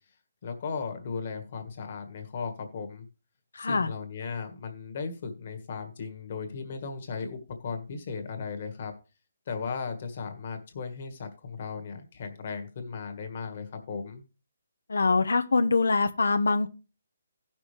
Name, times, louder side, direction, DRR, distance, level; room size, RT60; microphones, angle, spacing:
voice 1, 0.4-3.0 3.6-8.9 9.5-14.2, left 5 dB, 35° left, 1.6 m, -36 dB
voice 2, 3.5-3.9 14.9-16.7, left 3 dB, 90° left, 0.9 m, -24 dB
16.5 x 6.0 x 3.3 m
hypercardioid pair, 175°, 0 cm